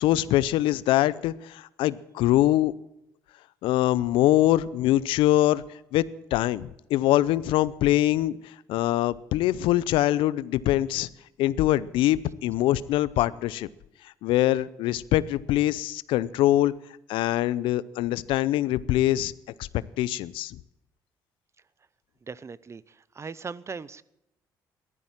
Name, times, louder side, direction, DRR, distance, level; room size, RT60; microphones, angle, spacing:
voice 1, 0.0-2.7 3.6-5.6 5.9-6.0 6.3-11.1 11.4-13.7 14.2-16.7 17.1-19.3 20.0-20.6, left 14 dB, 85° left, 19 dB, 0.6 m, -23 dB
voice 2, 22.2-24.0, right 5 dB, 35° right, 20 dB, 0.7 m, -39 dB
15.0 x 12.5 x 7.4 m, 0.86 s
supercardioid pair, 70°, 9 cm